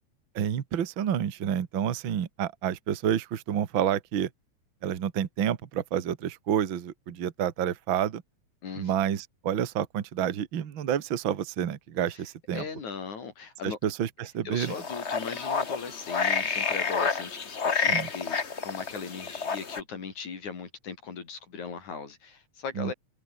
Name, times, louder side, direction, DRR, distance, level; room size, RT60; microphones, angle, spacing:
voice 1, 0.4-4.3 4.8-8.2 8.8-12.6 13.6-14.7 17.9-18.1 22.8-22.9, right 9 dB, 50° right, 1.9 m, -29 dB
voice 2, 8.6-9.2 12.1-12.2 12.5-13.8 14.4-22.9, left 5 dB, 75° left, 5.1 m, -39 dB
sound 1, 14.6-19.8, left 5 dB, 35° left, 1.1 m, -29 dB
omnidirectional pair, 3.4 m